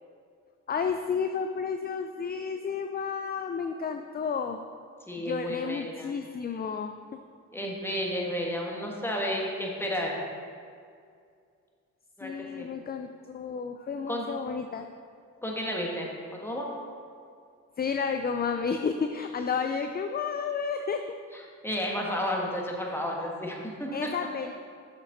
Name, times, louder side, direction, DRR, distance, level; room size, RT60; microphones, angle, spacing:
voice 1, 0.7-4.6 5.2-6.9 12.2-14.9 17.8-21.0 23.9-24.5, left 6 dB, 30° left, 6 dB, 0.4 m, -31 dB
voice 2, 5.1-6.1 7.5-10.2 12.2-12.3 12.6-12.7 14.1-14.2 15.4-16.7 21.3-24.1, equal, 5° left, -2 dB, 1.7 m, -32 dB
6.9 x 6.5 x 4.0 m, 2.3 s
supercardioid pair, 55°, 33 cm